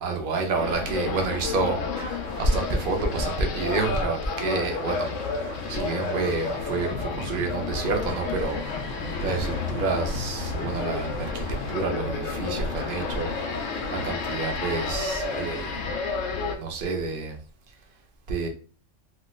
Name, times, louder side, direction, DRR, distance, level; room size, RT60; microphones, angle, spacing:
voice 1, 0.0-1.8 2.3-5.1 5.7-8.6 9.2-13.3 13.9-15.7 16.6-17.4 18.3-18.5, right 3 dB, 50° right, 0.7 m, -28 dB
sound 1, 0.5-16.6, left 4 dB, 70° left, 0.9 m, -31 dB
sound 2, 2.0-3.5 4.6-7.1 8.1-12.0 12.8-16.0, right 4 dB, 75° right, 1.1 m, -46 dB
3.0 x 3.0 x 2.3 m
omnidirectional pair, 1.4 m